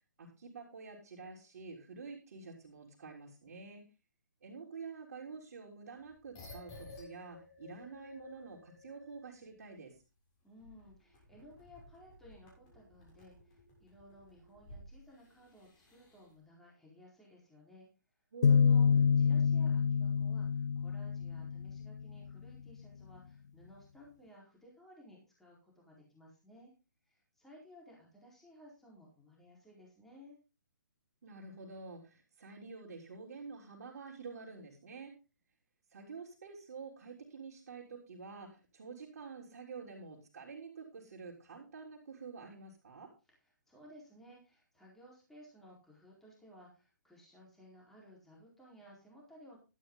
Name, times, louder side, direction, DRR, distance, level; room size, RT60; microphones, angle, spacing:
voice 1, 0.2-3.8 4.4-9.9 18.3-19.1 31.2-35.2 35.9-43.1, right 4 dB, 55° right, -3 dB, 3.6 m, -48 dB
sound 1, 6.1-9.6 9.9-10.0 10.6-16.3, left 2 dB, 30° left, 6.8 m, -55 dB
voice 2, 10.4-17.9 18.7-26.7 27.1-30.4 43.4-49.6, equal, 5° left, -3 dB, 4.3 m, -58 dB
sound 2, 18.4-22.1, left 6 dB, 65° left, 0.6 m, -27 dB
12.5 x 10.0 x 3.9 m, 0.31 s
figure-of-eight pair, 140°, 10 cm